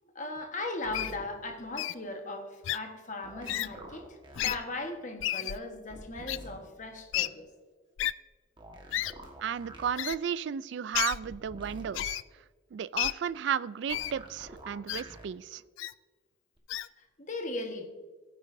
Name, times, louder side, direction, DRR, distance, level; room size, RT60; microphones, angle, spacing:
voice 1, 0.0-7.5 17.0-17.9, left 2 dB, 40° left, 4 dB, 1.3 m, -38 dB
sound 1, 0.8-1.2 3.2-4.6 5.9-6.6 8.6-9.9 11.2-11.9 13.9-15.3 16.6-16.7, right 1 dB, 25° right, 1.4 m, -47 dB
Wild animals, 0.9-1.1 1.8-2.0 2.6-2.8 3.5-3.7 4.3-4.6 5.2-5.6 6.3-6.4 7.1-7.3 8.0-8.1 8.9-9.1 10.0-10.2 10.9-11.2 11.9-12.2 13.0-13.1 13.9-14.1 14.9-15.0 15.8-15.9 16.7-16.9, left 13 dB, 75° left, 0.3 m, -31 dB
voice 2, 9.4-12.2 12.7-15.6, right 8 dB, 60° right, 18 dB, 0.3 m, -33 dB
16.0 x 9.1 x 2.6 m, 1.4 s
head